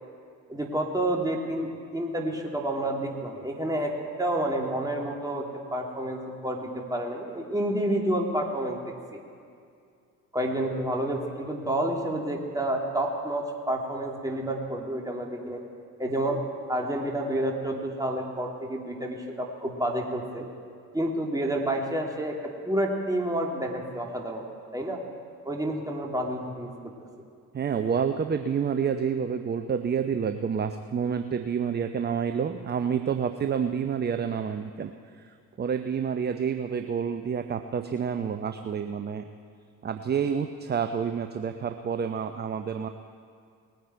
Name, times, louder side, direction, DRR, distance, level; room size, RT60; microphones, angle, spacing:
voice 1, 0.5-3.9 4.2-8.8 9.1-9.2 10.3-15.6 16.0-16.4 16.7-20.5 20.9-22.3 22.6-24.4 24.7-25.0 25.4-26.7, right 1 dB, 10° right, 0 dB, 2.7 m, -29 dB
voice 2, 27.5-34.9 35.2-39.2 39.8-42.9, right 7 dB, 25° right, 8 dB, 0.6 m, -29 dB
20.0 x 9.3 x 4.5 m, 2.3 s
hypercardioid pair, 50°, 43 cm